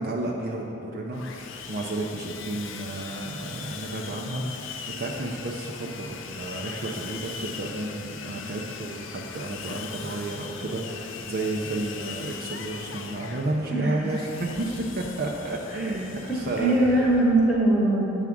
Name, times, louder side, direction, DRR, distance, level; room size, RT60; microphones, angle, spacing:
voice 1, 0.0-17.0, right 2 dB, 50° right, -1 dB, 0.5 m, -32 dB
Sawing, 1.1-17.6, left 6 dB, 70° left, 0.5 m, -39 dB
voice 2, 13.7-14.0 15.8-15.9 16.3-18.2, right 1 dB, 5° right, -5 dB, 1.1 m, -22 dB
8.0 x 3.6 x 5.9 m, 2.9 s
head